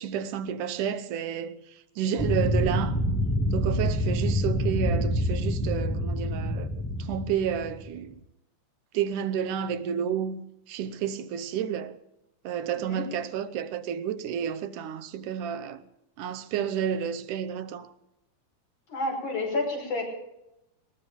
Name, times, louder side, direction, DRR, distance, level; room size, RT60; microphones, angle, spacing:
voice 1, 0.0-1.6 2.0-3.0 3.5-6.7 7.0-8.1 8.9-10.4 10.7-11.9 12.4-15.8 16.2-17.9, right 8 dB, 90° right, 2.4 m, -30 dB
sound 1, 2.2-8.0, left 1 dB, 10° left, 0.8 m, -27 dB
voice 2, 12.7-13.0 18.9-20.0, left 2 dB, 75° left, 7.1 m, -30 dB
20.0 x 19.5 x 3.5 m
omnidirectional pair, 3.5 m